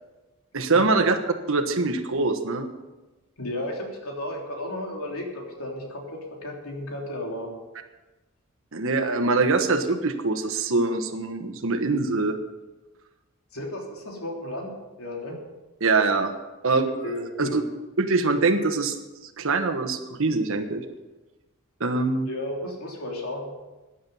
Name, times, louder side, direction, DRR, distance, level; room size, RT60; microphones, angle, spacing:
voice 1, 0.5-1.2 1.5-2.7 8.7-12.4 15.8-16.3 16.6-17.6 18.0-19.0 19.4-20.8 21.8-22.3, right 3 dB, 70° right, 7 dB, 1.3 m, -23 dB
voice 2, 3.4-7.5 13.5-14.7 15.0-15.4 16.8-17.6 22.3-23.5, left 1 dB, 90° left, 0 dB, 3.3 m, -33 dB
15.0 x 10.0 x 5.5 m, 1.1 s
head